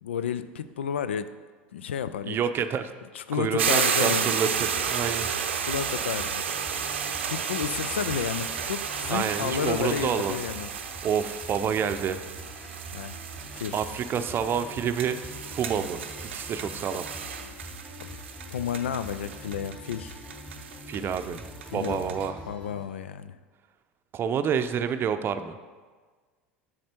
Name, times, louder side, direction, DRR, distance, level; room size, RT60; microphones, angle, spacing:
voice 1, 0.0-1.3 1.7-2.4 3.1-4.5 5.7-6.4 7.3-10.7 12.9-13.2 13.5-13.8 18.0-18.1 18.5-20.2 21.7-22.1 22.5-23.4, left 8 dB, 80° left, 13 dB, 0.3 m, -31 dB
voice 2, 2.3-2.9 3.3-5.3 9.1-10.4 11.0-12.2 13.7-15.2 15.5-16.0 16.3-17.1 20.9-21.4 21.7-22.4 24.1-25.6, right 7 dB, 35° right, 9 dB, 0.6 m, -28 dB
sound 1, 3.6-22.3, right 7 dB, 80° right, 0.6 m, -32 dB
sound 2, 4.5-22.9, equal, 15° left, 1.5 m, -44 dB
7.3 x 6.5 x 4.4 m, 1.4 s
hypercardioid pair, 75°, 6 cm